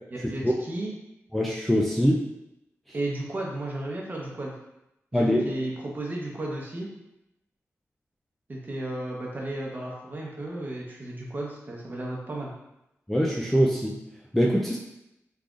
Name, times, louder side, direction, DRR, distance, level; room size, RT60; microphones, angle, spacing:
voice 1, 0.3-0.9 2.9-4.5 5.1-6.9 8.5-12.5, right 1 dB, 35° right, -3 dB, 0.8 m, -34 dB
voice 2, 1.3-2.2 5.1-5.5 13.1-14.0 14.3-14.8, equal, 5° left, -3 dB, 0.3 m, -23 dB
3.7 x 3.2 x 2.4 m, 0.86 s
wide cardioid pair, 145°, 5 cm